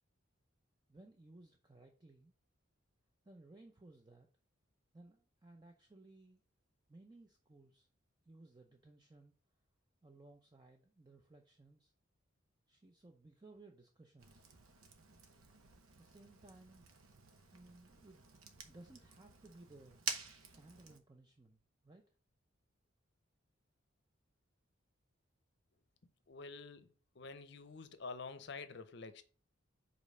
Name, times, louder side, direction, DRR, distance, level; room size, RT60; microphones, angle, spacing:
voice 1, 0.9-2.3 3.2-4.3 4.9-6.4 6.9-7.9 8.3-9.3 10.0-11.9 12.7-14.5 16.0-16.8 17.2-18.3 18.7-20.0 20.4-22.1, right 2 dB, 20° right, 0.6 m, -60 dB
Fire, 14.2-21.0, right 5 dB, 90° right, 0.9 m, -49 dB
voice 2, 26.3-29.2, left 4 dB, 55° left, 0.6 m, -48 dB
5.2 x 4.2 x 5.4 m
head